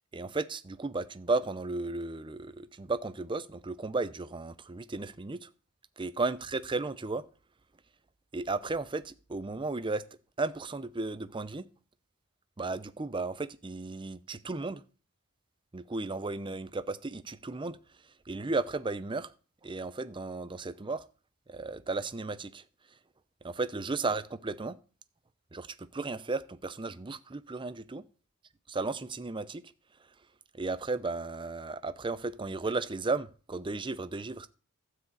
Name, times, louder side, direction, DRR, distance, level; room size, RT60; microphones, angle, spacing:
voice 1, 0.1-5.5 6.0-7.2 8.3-10.0 10.4-11.7 12.6-14.8 15.7-17.8 18.3-19.3 19.6-21.0 21.5-22.6 23.4-24.8 25.5-25.7 25.9-28.0 28.7-29.6 30.5-34.5, right 3 dB, 20° right, 0.5 m, -34 dB
12.5 x 4.9 x 8.2 m
head